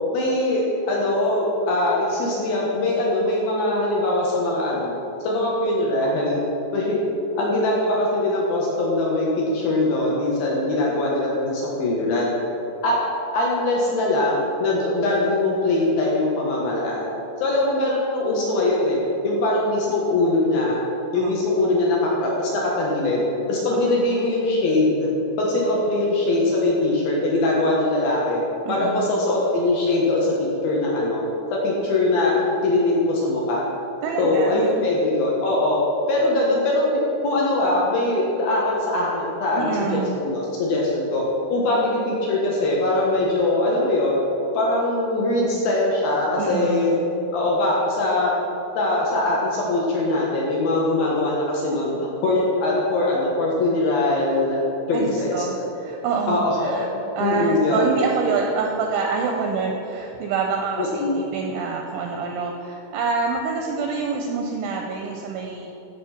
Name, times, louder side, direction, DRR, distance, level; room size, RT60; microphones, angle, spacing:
voice 1, 0.1-4.9 5.2-6.4 6.7-7.0 7.3-12.3 12.8-13.0 13.3-17.1 17.4-20.8 21.1-23.2 23.5-25.1 25.4-28.4 28.7-30.3 30.6-31.2 31.5-33.6 34.2-35.8 36.1-41.2 41.5-44.2 44.5-46.9 47.3-48.3 48.7-54.6 54.9-55.6 56.3-57.9 60.8-61.2, left 2 dB, 70° left, -4 dB, 2.4 m, -22 dB
voice 2, 28.7-29.1 34.0-34.6 39.6-40.2 46.4-47.0 54.9-55.6 55.8-56.9 57.2-65.7, right 5 dB, 80° right, 1 dB, 2.7 m, -27 dB
13.0 x 5.3 x 5.8 m, 2.9 s
omnidirectional pair, 5.9 m